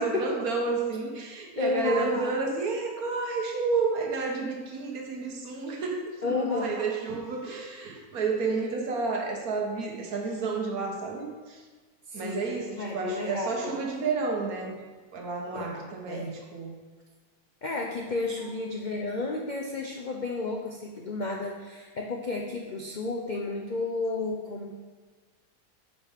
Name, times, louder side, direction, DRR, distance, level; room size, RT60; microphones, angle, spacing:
voice 1, 0.0-11.6 12.1-14.8 15.1-16.7 18.4-18.5, right 4 dB, 70° right, 1 dB, 1.5 m, -31 dB
voice 2, 1.6-2.1 6.2-6.7 12.1-13.8 15.5-15.7 16.1-16.4 17.6-24.8, left 3 dB, 80° left, 0 dB, 0.4 m, -32 dB
8.9 x 5.3 x 3.5 m, 1.4 s
omnidirectional pair, 1.6 m